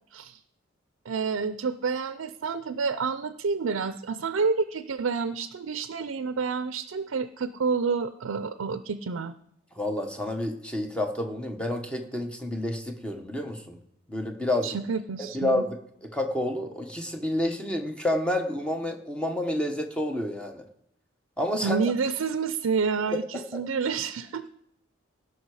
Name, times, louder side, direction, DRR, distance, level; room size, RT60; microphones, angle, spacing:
voice 1, 1.1-9.3 14.6-15.6 21.6-24.5, right 5 dB, 90° right, 12 dB, 0.5 m, -29 dB
voice 2, 9.8-13.8 14.1-14.8 15.3-15.8 16.1-20.6 21.4-21.8 23.1-23.6, left 1 dB, 5° left, 4 dB, 0.9 m, -29 dB
16.5 x 5.9 x 4.8 m, 0.75 s
head